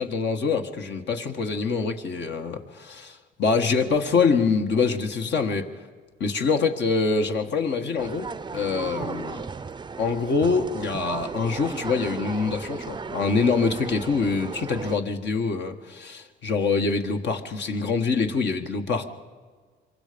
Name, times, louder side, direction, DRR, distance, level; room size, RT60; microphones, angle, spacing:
voice 1, 0.0-5.7 6.2-8.3 8.5-9.4 10.0-19.1, left 4 dB, 60° left, 5 dB, 1.7 m, -25 dB
sound 1, 8.0-15.0, right 4 dB, 25° right, 0.6 m, -35 dB
26.0 x 23.0 x 5.3 m, 1.5 s
cardioid pair, 90°, 20 cm